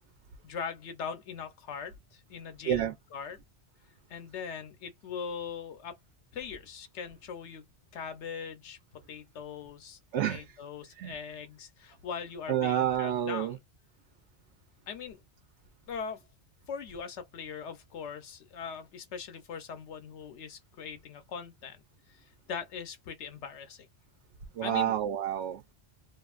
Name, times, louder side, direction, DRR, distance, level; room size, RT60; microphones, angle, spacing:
voice 1, 0.4-3.4 4.1-6.0 6.3-7.6 7.9-8.8 9.1-13.6 14.9-15.2 15.9-16.2 16.7-21.8 22.1-23.9 24.6-25.0, left 6 dB, 90° left, 1.0 m, -41 dB
voice 2, 10.1-10.4 11.0-11.2 12.5-13.6 24.6-25.7, right 10 dB, 80° right, 0.9 m, -29 dB
2.5 x 2.5 x 2.4 m
omnidirectional pair, 1.2 m